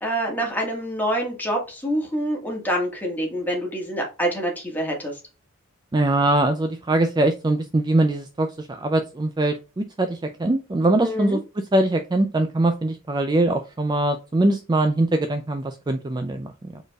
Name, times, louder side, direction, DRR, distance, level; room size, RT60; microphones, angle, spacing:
voice 1, 0.0-5.1 11.0-11.4, equal, 10° left, -1 dB, 1.7 m, -26 dB
voice 2, 5.9-16.8, right 2 dB, 20° right, 7 dB, 0.4 m, -22 dB
5.0 x 4.3 x 2.4 m, 0.30 s
head